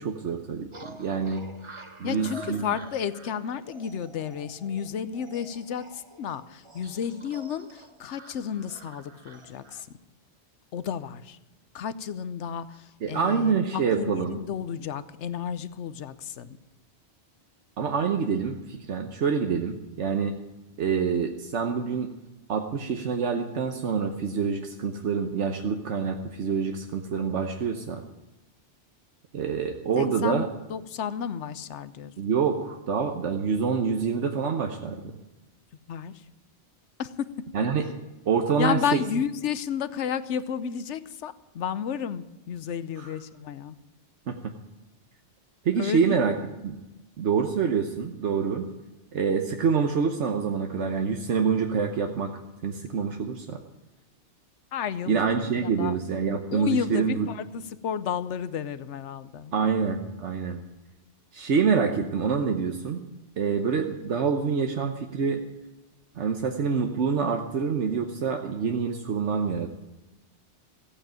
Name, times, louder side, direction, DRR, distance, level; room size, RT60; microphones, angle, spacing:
voice 1, 0.0-1.4 2.0-2.6 13.0-14.4 17.8-20.4 20.8-22.1 22.5-28.0 29.3-30.5 32.2-35.1 37.5-37.9 38.3-39.0 43.0-43.1 44.3-44.5 45.6-46.3 46.6-46.8 47.2-48.7 49.1-52.3 52.6-53.6 55.1-57.3 59.5-60.6 61.3-63.1 63.4-65.4 66.2-69.7, right 6 dB, 80° right, 4 dB, 1.3 m, -26 dB
sound 1, 0.7-9.8, right 2 dB, 25° right, 1.1 m, -48 dB
voice 2, 2.0-9.9 10.7-11.4 11.7-16.6 30.0-32.1 35.9-36.3 37.0-37.3 37.6-37.7 38.6-43.8 45.8-46.1 54.7-56.0 56.5-59.5, left 8 dB, 85° left, 14 dB, 1.1 m, -32 dB
14.5 x 8.7 x 8.9 m, 1.0 s
omnidirectional pair, 1.2 m